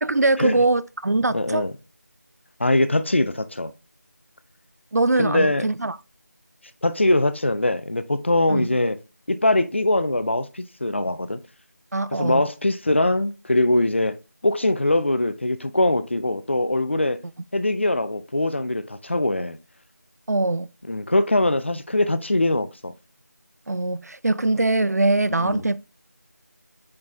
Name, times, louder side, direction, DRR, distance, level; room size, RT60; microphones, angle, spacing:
voice 1, 0.0-1.6 4.9-6.0 8.5-8.7 11.9-12.5 20.3-20.7 23.7-25.8, right 2 dB, 65° right, 0.5 m, -22 dB
voice 2, 1.3-1.7 2.6-3.7 5.2-5.7 6.8-9.0 9.3-11.4 12.1-14.2 14.4-17.2 17.5-19.6 20.9-22.9 25.4-25.6, left 1 dB, 40° left, 0.5 m, -22 dB
8.6 x 4.0 x 3.4 m
figure-of-eight pair, 170°, 9 cm